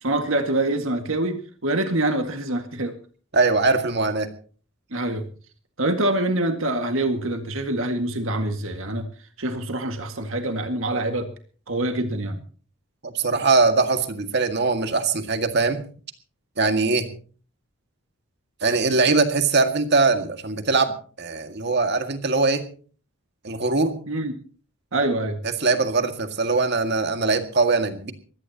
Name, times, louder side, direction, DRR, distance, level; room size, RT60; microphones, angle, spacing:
voice 1, 0.0-3.0 4.9-5.2 5.8-9.1 9.4-11.3 11.7-12.4 24.1-24.3 24.9-25.4, right 1 dB, 70° right, 6 dB, 2.0 m, -25 dB
voice 2, 3.3-4.3 13.0-15.9 16.6-17.1 18.6-22.7 23.4-24.0 25.4-28.1, right 3 dB, 50° right, 7 dB, 2.0 m, -21 dB
22.5 x 16.5 x 2.9 m, 0.40 s
head